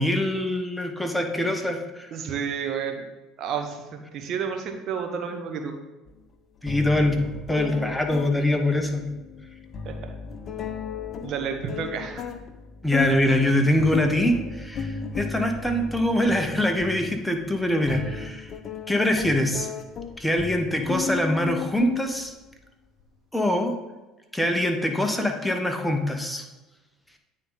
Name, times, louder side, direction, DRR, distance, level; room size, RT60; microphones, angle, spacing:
voice 1, 0.0-2.1 6.6-9.1 12.8-18.5 18.9-19.7 20.2-22.3 23.3-23.8 24.3-26.4, left 1 dB, 5° left, 4 dB, 1.1 m, -24 dB
voice 2, 2.1-3.1 3.4-5.8 9.8-10.1 11.2-12.3, right 6 dB, 55° right, 5 dB, 1.0 m, -31 dB
sound 1, 6.1-6.2 6.7-22.5, left 6 dB, 45° left, 0.7 m, -35 dB
9.1 x 3.9 x 4.0 m, 1.1 s
hypercardioid pair, 70°, 0 cm